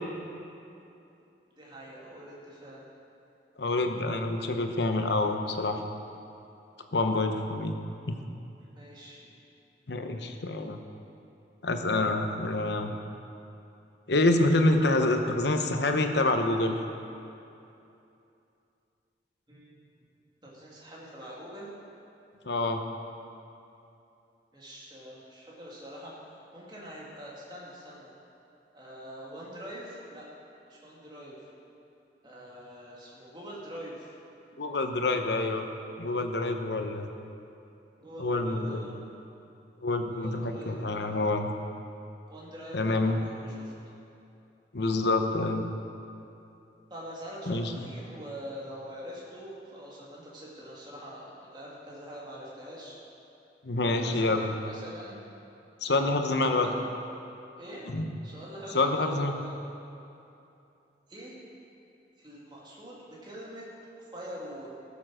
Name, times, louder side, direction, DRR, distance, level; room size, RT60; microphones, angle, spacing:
voice 1, 1.6-2.9 8.6-9.3 19.5-19.7 20.4-21.7 24.5-26.1 26.5-28.1 28.7-30.3 30.7-31.4 32.2-34.1 38.0-39.0 40.1-41.3 42.3-43.7 46.9-53.0 53.9-55.2 56.0-56.7 57.6-57.9 58.2-59.6 61.1-61.4 62.2-63.0 63.2-63.7 64.0-64.7, equal, 25° right, -5 dB, 2.3 m, -44 dB
voice 2, 3.6-5.8 6.9-7.8 8.1-8.2 9.9-10.8 11.6-12.9 14.1-16.8 22.4-22.8 34.6-35.7 36.0-37.1 38.2-39.0 39.8-41.5 42.7-43.2 44.7-45.7 47.5-47.7 53.6-54.5 55.8-56.7 57.9-58.1 58.7-59.3, left 2 dB, 70° left, 5 dB, 0.9 m, -27 dB
14.0 x 7.3 x 6.3 m, 2.7 s
head